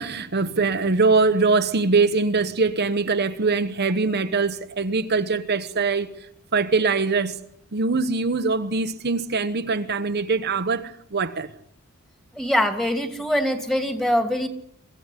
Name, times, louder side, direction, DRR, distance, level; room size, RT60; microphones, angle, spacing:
voice 1, 0.0-6.1 6.5-7.4 7.7-11.5, right 4 dB, 50° right, 1.0 m, -22 dB
voice 2, 12.3-14.5, equal, ahead, 2.5 m, -23 dB
24.5 x 15.0 x 9.9 m
head